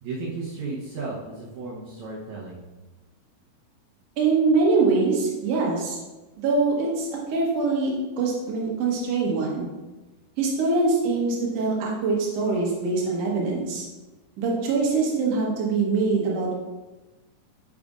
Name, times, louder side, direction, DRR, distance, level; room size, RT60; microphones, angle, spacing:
voice 1, 0.0-2.6, right 3 dB, 90° right, -5 dB, 1.6 m, -34 dB
voice 2, 4.2-6.0 6.4-7.9 8.2-9.7 10.4-13.8 14.4-16.5, right 3 dB, 70° right, -3 dB, 1.5 m, -23 dB
9.2 x 5.1 x 2.5 m, 1.1 s
omnidirectional pair, 4.7 m